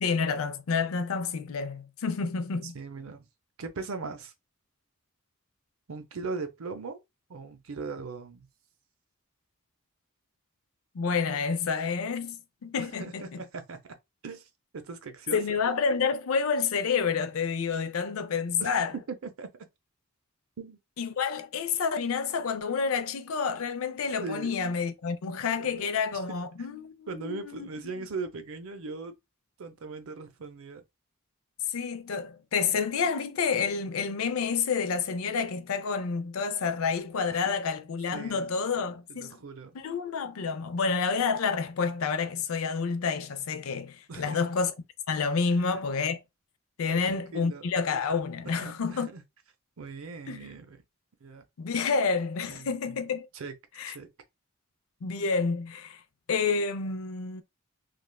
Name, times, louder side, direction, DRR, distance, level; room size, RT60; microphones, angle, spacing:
voice 1, 0.0-2.7 10.9-13.2 15.3-18.9 21.0-27.7 31.7-39.3 39.7-44.7 45.1-46.2 46.8-49.1 50.3-50.4 51.6-53.3 53.8-54.0 55.0-56.0 56.3-57.4, left 5 dB, 70° left, 0.4 m, -29 dB
voice 2, 2.6-3.2 3.6-4.3 5.9-7.0 7.3-8.5 12.8-14.0 14.2-14.5 14.7-15.6 18.6-18.7 19.1-19.5 20.6-20.8 24.2-24.5 25.6-25.9 26.1-26.2 27.1-29.1 29.6-30.8 38.1-38.5 38.8-39.8 44.1-44.4 45.5-45.8 46.9-47.6 48.5-49.2 49.8-50.8 51.2-51.4 52.4-53.0 53.3-53.5 53.8-54.1, right 4 dB, 70° right, 0.5 m, -39 dB
3.2 x 2.3 x 2.2 m
head